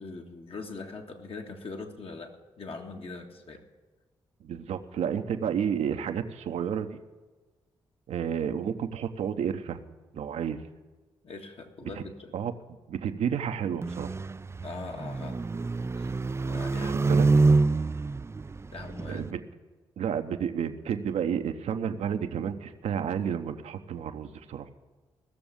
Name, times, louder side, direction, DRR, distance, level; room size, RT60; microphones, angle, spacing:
voice 1, 0.0-3.6 11.2-12.3 14.6-15.4 15.9-16.2 16.4-17.2 18.7-19.2, left 3 dB, 55° left, 3 dB, 1.8 m, -41 dB
voice 2, 4.4-7.0 8.1-9.8 10.1-10.6 12.3-12.5 12.9-14.1 16.8-17.3 19.1-19.4 20.0-24.7, right 8 dB, 70° right, 8 dB, 0.8 m, -31 dB
sound 1, 13.8-19.3, right 3 dB, 25° right, 0.4 m, -26 dB
16.0 x 6.9 x 8.7 m, 1.3 s
hypercardioid pair, 40°, 12 cm